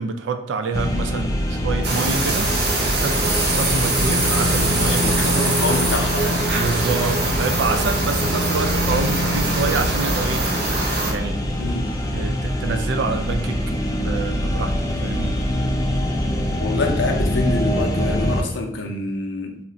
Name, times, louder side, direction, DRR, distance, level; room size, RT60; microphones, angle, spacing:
voice 1, 0.0-2.5 2.8-5.6 6.5-10.5 11.0-11.4 12.1-13.6 14.0-14.8 15.0-15.4, right 4 dB, 85° right, 8 dB, 0.4 m, -27 dB
sound 1, 0.7-18.4, equal, 20° left, 0.3 m, -24 dB
sound 2, 1.8-11.1, right 2 dB, 60° right, 0.7 m, -24 dB
voice 2, 4.9-6.5 11.6-11.9 16.6-19.6, left 3 dB, 85° left, 3 dB, 0.5 m, -26 dB
2.4 x 2.1 x 3.8 m, 0.74 s
head